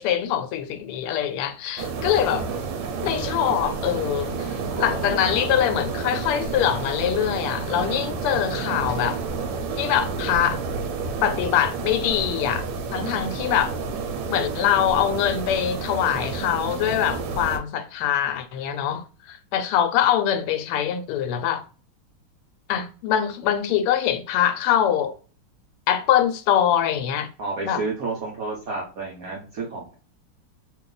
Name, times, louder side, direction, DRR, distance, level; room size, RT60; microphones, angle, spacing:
voice 1, 0.0-2.4 3.0-9.2 9.8-10.6 11.2-12.7 12.9-13.7 14.3-21.6 22.7-25.1 25.9-27.3 27.6-27.8, left 10 dB, 90° left, 1.5 m, -23 dB
sound 1, 1.8-17.6, right 4 dB, 85° right, 1.6 m, -30 dB
voice 2, 2.3-2.6 4.7-5.8 27.4-29.9, right 3 dB, 55° right, 1.0 m, -32 dB
3.6 x 2.4 x 3.8 m
omnidirectional pair, 2.4 m